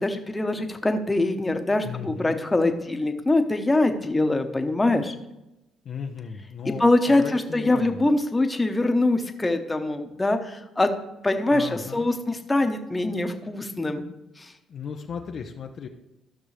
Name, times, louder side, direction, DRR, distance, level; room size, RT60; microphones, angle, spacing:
voice 1, 0.0-5.1 6.6-10.9 11.2-14.0 14.4-14.5, left 2 dB, 20° left, 6 dB, 1.1 m, -23 dB
voice 2, 1.8-2.5 5.8-8.0 11.5-12.1 14.7-15.9, left 6 dB, 60° left, 4 dB, 0.7 m, -36 dB
13.5 x 6.0 x 3.3 m, 0.92 s
hypercardioid pair, 55°, 0 cm